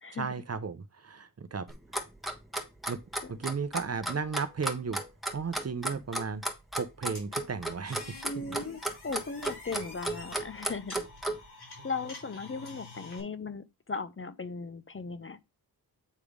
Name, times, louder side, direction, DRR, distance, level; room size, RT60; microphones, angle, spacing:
voice 1, 0.1-1.7 2.9-3.0 3.3-5.0 5.3-6.4 6.8-8.6, right 5 dB, 40° right, 0.7 m, -35 dB
Clock, 1.7-11.4, right 1 dB, ahead, 1.2 m, -33 dB
sound 1, 7.1-13.2, left 3 dB, 85° left, 4.6 m, -48 dB
voice 2, 8.2-11.1 11.8-15.4, left 4 dB, 35° left, 0.6 m, -37 dB
8.4 x 3.4 x 5.1 m
wide cardioid pair, 100°, 38 cm